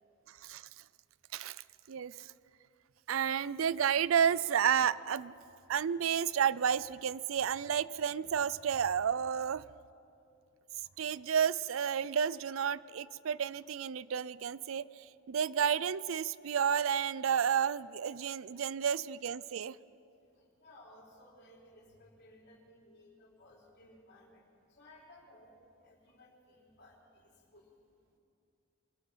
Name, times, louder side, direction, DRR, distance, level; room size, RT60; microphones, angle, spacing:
voice 1, 1.3-2.3 3.1-5.3 5.7-9.6 11.0-14.9 15.3-19.8, right 8 dB, 85° right, 18 dB, 0.4 m, -31 dB
voice 2, 20.3-27.7, left 1 dB, 55° left, -1 dB, 3.7 m, -59 dB
25.0 x 18.5 x 5.7 m, 2.6 s
head